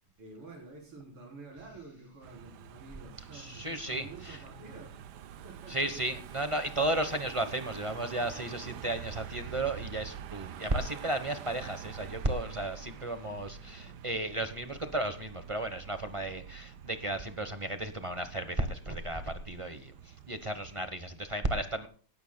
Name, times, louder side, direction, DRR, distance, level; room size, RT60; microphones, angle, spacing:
voice 1, 0.2-5.0 5.4-6.0 13.8-14.0 20.8-20.9, right 3 dB, 85° right, -2 dB, 5.1 m, -49 dB
Car passing by / Engine, 2.2-20.9, right 9 dB, 65° right, 1.1 m, -46 dB
voice 2, 3.3-4.4 5.7-21.9, right 1 dB, 25° right, 9 dB, 0.7 m, -34 dB
18.5 x 14.0 x 2.3 m, 0.42 s
omnidirectional pair, 2.4 m